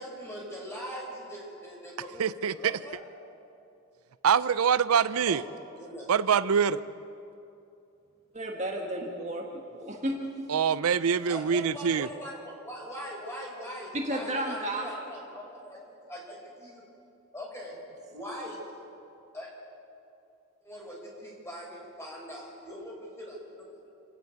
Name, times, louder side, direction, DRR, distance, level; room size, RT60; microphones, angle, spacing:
voice 1, 0.0-3.0 5.3-5.4 5.8-6.1 11.3-15.8 16.1-16.8 17.3-17.8 18.1-18.6 19.3-19.5 20.6-23.9, equal, 10° left, -3 dB, 5.4 m, -41 dB
voice 2, 2.2-2.8 4.2-5.4 6.1-6.8 10.5-12.1, right 7 dB, 90° right, 15 dB, 0.5 m, -24 dB
voice 3, 8.3-10.5 13.9-14.9, right 1 dB, 35° right, 0 dB, 1.6 m, -33 dB
28.0 x 9.8 x 9.4 m, 2.7 s
head